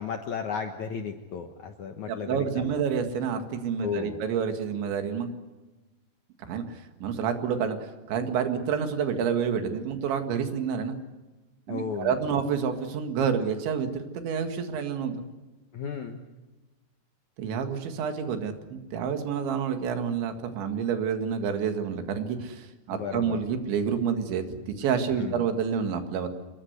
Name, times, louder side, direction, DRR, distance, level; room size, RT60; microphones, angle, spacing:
voice 1, 0.0-2.8 3.8-4.2 11.7-12.2 15.7-16.2 22.9-23.4 25.2-25.4, left 6 dB, 65° left, 6 dB, 1.9 m, -34 dB
voice 2, 2.1-5.3 6.4-11.0 11.7-15.2 17.4-26.3, right 7 dB, 90° right, 7 dB, 4.3 m, -29 dB
26.5 x 21.5 x 8.1 m, 1.2 s
omnidirectional pair, 5.1 m